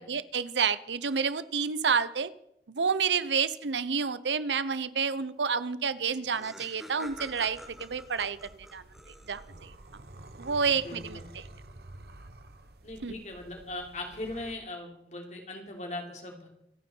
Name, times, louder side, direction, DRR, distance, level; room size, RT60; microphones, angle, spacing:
voice 1, 0.0-2.3 2.7-8.4 8.7-8.8 9.3-9.7 10.4-11.4 13.0-13.1, right 6 dB, 90° right, 16 dB, 0.8 m, -29 dB
Laughter, 5.7-5.8 6.0-9.7, equal, ahead, 1.8 m, -47 dB
sound 1, 7.0-14.5, right 1 dB, 65° right, 1.2 m, -50 dB
voice 2, 10.6-11.3 12.8-16.5, left 2 dB, 40° left, 1 dB, 3.4 m, -40 dB
27.0 x 9.5 x 4.6 m, 0.78 s
head